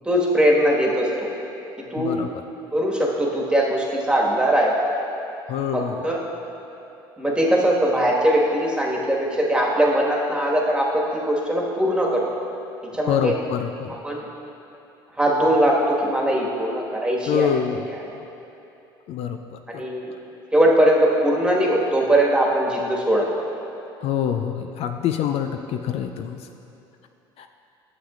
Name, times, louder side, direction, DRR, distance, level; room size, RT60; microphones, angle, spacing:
voice 1, 0.0-1.3 1.9-2.2 2.7-4.7 5.7-6.2 7.2-12.2 12.9-13.3 13.9-14.2 15.2-17.6 19.7-20.1 20.5-23.3, right 1 dB, 10° right, -3 dB, 1.5 m, -20 dB
voice 2, 2.0-2.3 5.5-6.0 13.1-13.9 17.3-17.9 18.1-18.2 19.1-19.4 19.7-19.9 24.0-26.4 27.4-27.5, left 8 dB, 55° left, 6 dB, 0.4 m, -25 dB
11.0 x 7.2 x 2.5 m, 2.9 s
hypercardioid pair, 75°, 12 cm